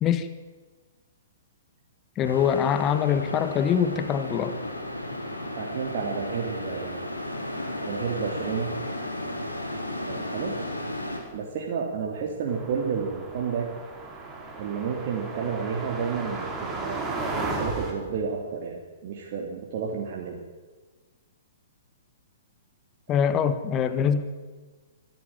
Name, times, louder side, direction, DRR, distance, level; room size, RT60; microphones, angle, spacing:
sound 1, 2.2-11.2, left 1 dB, 90° left, 4.6 m, -34 dB
voice 1, 2.2-4.6 23.1-24.3, left 8 dB, 25° left, 11 dB, 1.4 m, -24 dB
voice 2, 5.6-7.0 7.8-8.8 10.0-10.6 11.3-13.7 14.6-20.4 23.2-23.4, right 6 dB, 45° right, -1 dB, 3.2 m, -31 dB
sound 2, 12.5-17.9, right 3 dB, 10° right, 4.7 m, -34 dB
25.0 x 14.0 x 9.0 m, 1.3 s
figure-of-eight pair, 115°, 0 cm